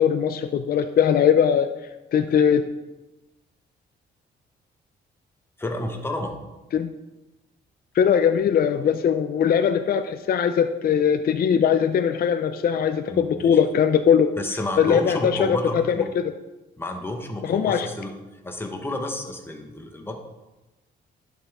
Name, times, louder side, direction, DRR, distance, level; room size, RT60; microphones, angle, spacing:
voice 1, 0.0-1.7 2.1-2.6 6.7-6.9 8.0-14.3 14.8-16.0 17.4-17.9, left 8 dB, 50° left, 8 dB, 0.5 m, -20 dB
voice 2, 5.6-6.4 13.1-13.6 14.4-16.1 16.8-18.1 18.4-20.2, left 1 dB, 10° left, 3 dB, 1.2 m, -31 dB
11.0 x 5.5 x 3.6 m, 1.0 s
cardioid pair, 90°, 20 cm